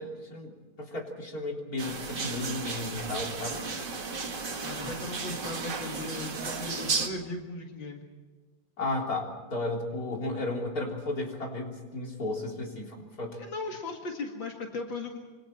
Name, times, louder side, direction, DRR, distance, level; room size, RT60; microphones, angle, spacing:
voice 1, 0.0-3.7 8.8-13.4, left 2 dB, 50° left, 0 dB, 4.1 m, -34 dB
sound 1, 1.8-7.1, right 4 dB, 65° right, 2.6 m, -34 dB
voice 2, 4.6-8.0 13.4-15.2, left 2 dB, 80° left, 1 dB, 2.8 m, -37 dB
26.5 x 26.5 x 4.5 m, 1.3 s
omnidirectional pair, 2.0 m